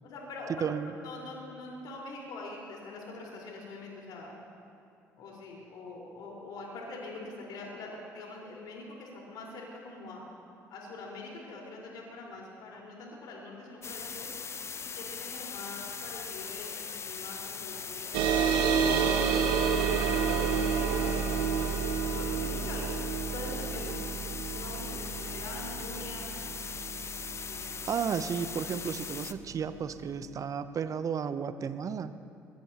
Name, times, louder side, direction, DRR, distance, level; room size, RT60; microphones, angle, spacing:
voice 1, 0.0-0.7 1.0-4.3 5.2-10.2 10.7-14.3 14.8-18.2 18.9-21.1 22.0-22.8 23.3-24.1 24.5-26.3 27.4-27.6, left 3 dB, 60° left, -2 dB, 4.6 m, -44 dB
voice 2, 0.6-0.9 27.9-32.1, right 7 dB, 45° right, 12 dB, 0.8 m, -33 dB
sound 1, 13.8-29.3, left 6 dB, 35° left, 0.8 m, -40 dB
sound 2, 18.1-29.1, right 6 dB, 70° right, 1.0 m, -30 dB
22.5 x 21.0 x 3.0 m, 2.6 s
figure-of-eight pair, 50°, 8 cm